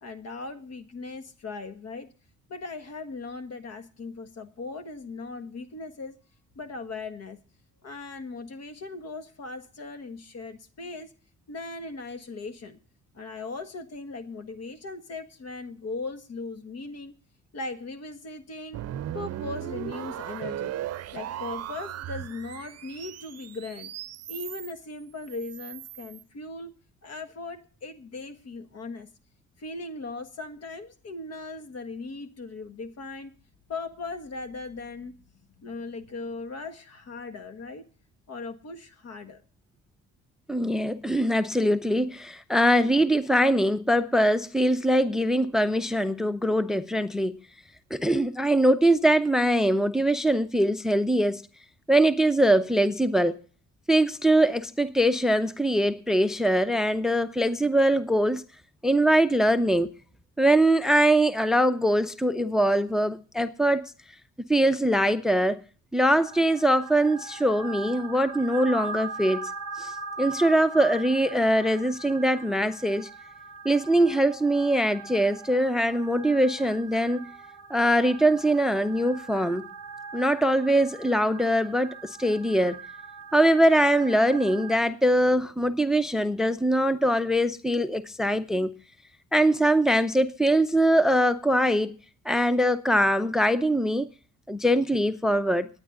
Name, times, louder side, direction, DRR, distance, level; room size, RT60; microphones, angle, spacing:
voice 1, 0.0-2.1 2.5-6.2 6.5-7.4 7.8-11.1 11.5-12.8 13.1-17.1 17.5-18.8 19.1-20.7 21.1-23.9 24.3-26.7 27.0-29.1 29.6-33.3 33.7-35.1 35.6-37.9 38.3-39.4, left 3 dB, 55° left, 1.6 m, -38 dB
sound 1, 18.7-24.7 25.2-26.2, right 12 dB, 55° right, 0.6 m, -37 dB
voice 2, 40.5-47.4 47.9-51.4 51.9-53.4 53.9-58.4 58.8-59.9 60.4-63.9 64.5-65.6 65.9-69.5 69.8-73.1 73.6-77.3 77.7-79.7 80.1-82.8 83.3-88.8 89.3-91.9 92.2-94.1 94.5-95.7, right 1 dB, ahead, 0.6 m, -22 dB
sound 2, 66.1-84.8, right 4 dB, 15° left, 3.8 m, -41 dB
27.5 x 9.6 x 2.5 m
cardioid pair, 90°, 30 cm